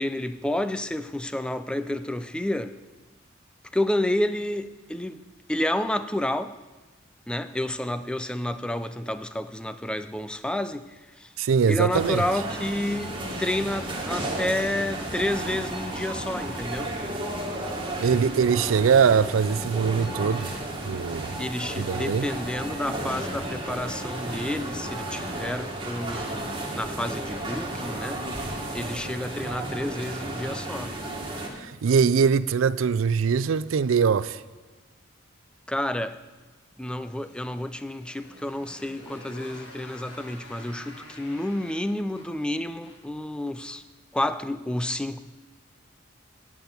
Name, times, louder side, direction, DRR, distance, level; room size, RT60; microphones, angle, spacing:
voice 1, 0.0-2.8 3.7-5.2 5.5-6.6 7.3-11.3 11.7-16.9 21.4-28.2 28.7-31.0 35.7-36.2 36.8-43.8 44.1-45.2, left 1 dB, 5° left, 0.3 m, -30 dB
voice 2, 11.4-12.2 18.0-20.5 20.8-21.3 21.8-22.3 31.6-34.4, right 6 dB, 80° right, 0.4 m, -22 dB
sound 1, 11.9-31.5, right 1 dB, 25° right, 1.6 m, -33 dB
Motorcycle, 36.9-43.2, left 1 dB, 60° left, 2.0 m, -48 dB
8.8 x 6.0 x 8.1 m
head